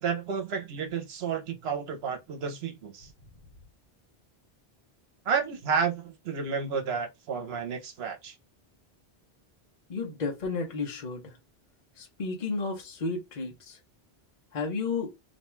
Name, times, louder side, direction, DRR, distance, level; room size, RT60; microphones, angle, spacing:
voice 1, 0.0-3.1 5.3-8.3, right 6 dB, 75° right, 0.9 m, -31 dB
voice 2, 9.9-11.3 12.0-13.8 14.5-15.1, left 4 dB, 50° left, 0.8 m, -32 dB
2.5 x 2.2 x 3.0 m
omnidirectional pair, 1.1 m